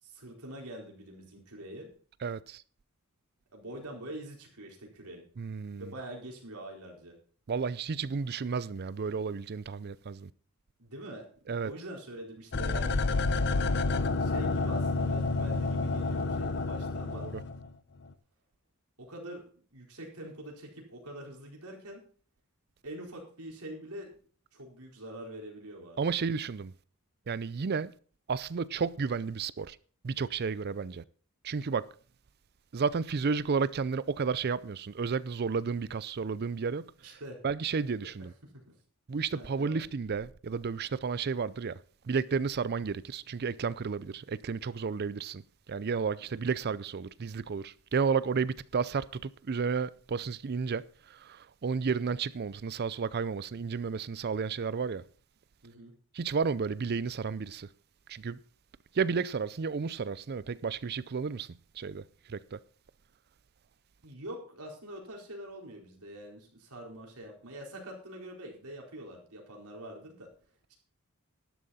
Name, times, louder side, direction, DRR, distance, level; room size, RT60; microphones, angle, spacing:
voice 1, 0.0-1.9 3.5-5.2 5.8-7.2 10.8-11.3 11.6-13.0 14.2-17.3 19.0-19.4 19.7-22.0 22.8-24.1 24.5-26.0 37.0-37.4 38.4-38.6 39.3-39.9 46.3-46.5 55.6-55.9 64.0-70.3, right 1 dB, 85° right, 4.2 m, -44 dB
voice 2, 2.2-2.6 5.4-5.9 7.5-10.3 11.5-11.7 17.1-17.4 26.0-26.7 27.3-27.9 28.3-29.8 30.0-31.0 31.4-31.9 32.7-36.9 37.4-38.3 39.1-41.8 42.1-45.4 45.7-55.0 56.1-57.7 58.1-58.4 58.9-61.5 61.8-62.6, right 5 dB, 45° right, 0.5 m, -32 dB
sound 1, 12.5-17.7 18.1-18.2, left 3 dB, 50° left, 0.8 m, -29 dB
12.0 x 11.5 x 4.2 m
head